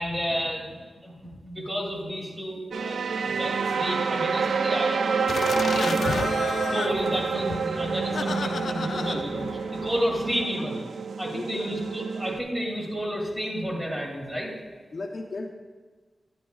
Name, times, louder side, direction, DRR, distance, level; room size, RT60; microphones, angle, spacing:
voice 1, 0.0-5.1 5.6-6.3 6.7-9.4 9.7-10.8 11.2-14.5, equal, 15° right, -2 dB, 2.6 m, -31 dB
sound 1, 2.7-12.4, right 5 dB, 90° right, 0.3 m, -28 dB
sound 2, 5.3-10.4, left 5 dB, 80° left, 0.3 m, -33 dB
voice 2, 11.3-11.7 14.9-15.5, left 2 dB, 50° left, 1 dB, 0.8 m, -35 dB
11.0 x 10.5 x 2.4 m, 1.4 s
wide cardioid pair, 85°, 0 cm